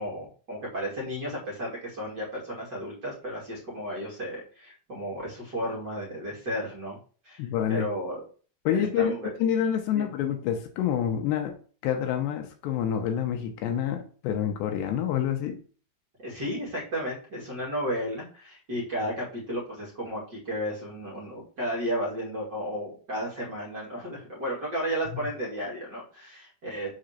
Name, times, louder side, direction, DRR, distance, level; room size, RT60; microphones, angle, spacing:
voice 1, 0.0-7.0 7.2-8.2 8.7-9.3 9.9-10.1 16.2-26.9, equal, 35° right, -4 dB, 1.8 m, -33 dB
voice 2, 7.4-7.9 8.7-11.5 11.8-15.6, left 9 dB, 75° left, 5 dB, 2.9 m, -27 dB
7.1 x 3.9 x 6.5 m, 0.41 s
omnidirectional pair, 5.2 m